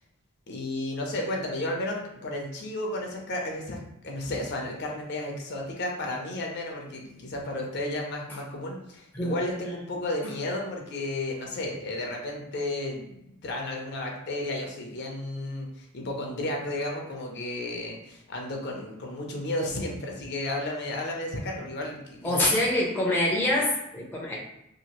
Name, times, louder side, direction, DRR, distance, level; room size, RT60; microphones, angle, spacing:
voice 1, 0.5-3.8 4.0-13.1 13.4-22.5, left 1 dB, 55° left, 0 dB, 0.6 m, -33 dB
voice 2, 22.2-24.4, left 1 dB, 10° left, -4 dB, 0.5 m, -25 dB
2.8 x 2.5 x 2.9 m, 0.83 s
head